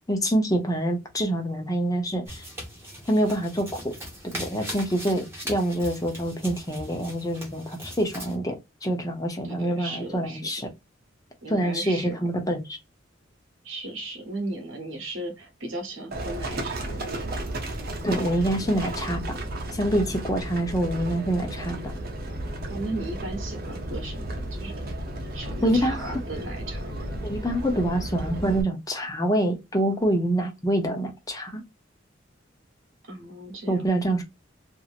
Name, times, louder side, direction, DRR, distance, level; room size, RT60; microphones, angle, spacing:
voice 1, 0.1-2.4 3.1-3.9 4.3-10.7 11.5-12.8 18.0-19.4 19.7-21.8 25.6-26.2 27.2-31.6 33.7-34.2, right 1 dB, 20° left, 0.7 m, -26 dB
sound 1, 2.2-8.4, equal, 10° right, 1.2 m, -39 dB
voice 2, 9.4-10.5 11.4-12.2 13.6-17.1 22.7-24.9 25.3-27.1 33.1-33.8, right 2 dB, 80° right, 1.1 m, -36 dB
Livestock farm animals working animals, 16.1-28.6, right 1 dB, 50° right, 0.8 m, -33 dB
2.9 x 2.7 x 2.5 m
head